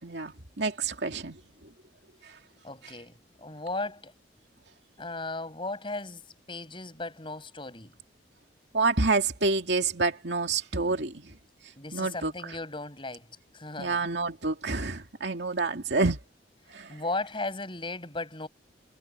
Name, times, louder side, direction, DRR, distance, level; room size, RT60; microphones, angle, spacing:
voice 1, 0.0-1.7 2.2-2.4 8.7-11.4 11.9-12.6 13.8-16.2 16.7-17.0, right 3 dB, 70° right, 2.7 m, -28 dB
voice 2, 2.6-4.1 5.0-6.2 6.5-7.9 11.8-13.3 13.5-14.0 16.9-18.5, left 2 dB, 30° left, 7.7 m, -36 dB
head